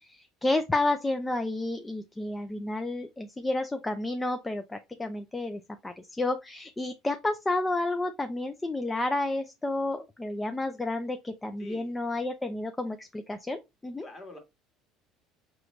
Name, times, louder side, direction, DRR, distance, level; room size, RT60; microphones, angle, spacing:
voice 1, 0.0-14.1, left 2 dB, 10° left, 0.5 m, -31 dB
voice 2, 11.6-11.9 14.0-14.4, left 2 dB, 30° left, 1.7 m, -45 dB
4.8 x 3.0 x 3.1 m
cardioid pair, 115°, 0 cm